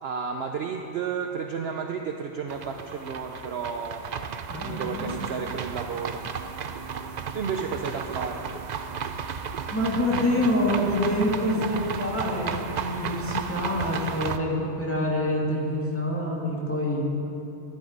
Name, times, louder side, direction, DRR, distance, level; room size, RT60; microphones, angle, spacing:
voice 1, 0.0-4.0 4.6-6.3 7.3-8.4, right 6 dB, 60° right, 4 dB, 0.8 m, -32 dB
sound 1, 2.5-14.4, right 6 dB, 75° right, 0.4 m, -34 dB
voice 2, 4.5-5.3 9.7-17.0, left 1 dB, 10° left, -4 dB, 2.0 m, -26 dB
13.0 x 10.5 x 5.2 m, 2.9 s
omnidirectional pair, 1.4 m